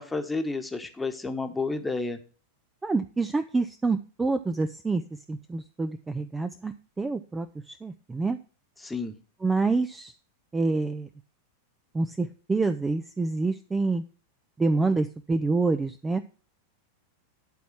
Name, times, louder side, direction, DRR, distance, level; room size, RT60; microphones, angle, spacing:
voice 1, 0.0-2.2 8.8-9.2, left 3 dB, 10° left, 6 dB, 1.3 m, -31 dB
voice 2, 2.8-8.4 9.4-10.1 10.5-11.1 11.9-14.0 14.6-16.2, right 3 dB, 10° right, 10 dB, 0.5 m, -27 dB
11.5 x 4.2 x 5.9 m, 0.36 s
figure-of-eight pair, 90°, 0 cm